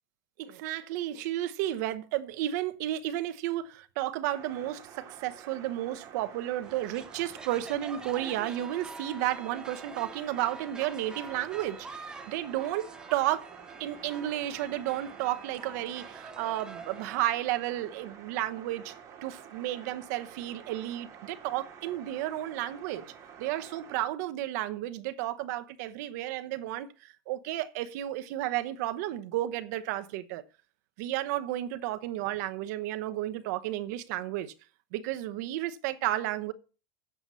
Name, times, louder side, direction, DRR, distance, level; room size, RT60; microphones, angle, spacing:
voice 1, 0.4-13.5 13.8-18.9 19.2-23.0 23.4-30.4 31.0-34.5 34.9-36.5, right 14 dB, 60° right, 0.9 m, -32 dB
sound 1, 4.3-24.0, right 8 dB, 30° right, 2.5 m, -49 dB
sound 2, 6.6-17.2, right 3 dB, 5° right, 0.9 m, -46 dB
8.8 x 7.8 x 5.5 m
supercardioid pair, 165°, 11 cm